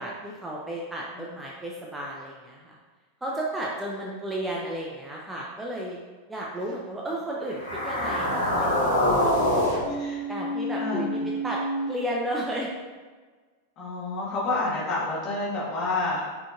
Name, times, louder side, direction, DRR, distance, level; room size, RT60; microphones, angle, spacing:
voice 1, 0.0-2.6 3.2-6.0 6.3-9.6 10.3-11.1 11.4-11.6 11.9-12.7, right 1 dB, 10° right, -3 dB, 0.5 m, -33 dB
sound 1, 7.5-11.9, left 1 dB, 80° left, 1.3 m, -26 dB
voice 2, 9.9-10.2 10.8-11.3 13.8-16.2, left 2 dB, 35° left, -6 dB, 1.4 m, -29 dB
4.9 x 2.8 x 2.4 m, 1.4 s
figure-of-eight pair, 90°, 0 cm